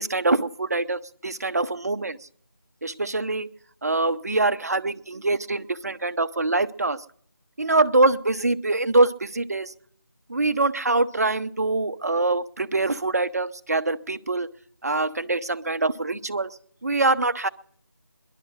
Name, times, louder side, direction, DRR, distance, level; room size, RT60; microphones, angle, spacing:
voice 1, 0.0-2.2 2.8-3.5 3.8-7.0 7.6-9.7 10.3-14.5 14.8-16.5 16.8-17.5, right 2 dB, 45° right, 11 dB, 0.6 m, -24 dB
19.0 x 11.5 x 6.3 m, 0.65 s
figure-of-eight pair, 175°, 12 cm